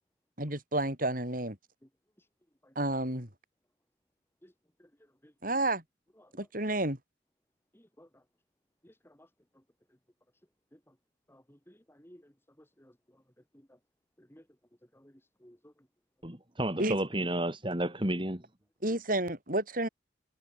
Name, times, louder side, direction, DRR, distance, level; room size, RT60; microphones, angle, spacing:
voice 1, 0.4-1.6 2.8-3.3 5.4-5.8 6.4-7.0 16.8-17.0 18.8-19.9, right 1 dB, 50° right, 7.8 m, -30 dB
voice 2, 7.7-8.1 8.8-8.9 9.2-9.3 11.3-12.2 12.8-12.9 14.2-14.4 14.9-15.1 15.4-15.7, equal, 15° left, 2.9 m, -57 dB
voice 3, 16.2-18.4, right 1 dB, 25° right, 3.7 m, -31 dB
head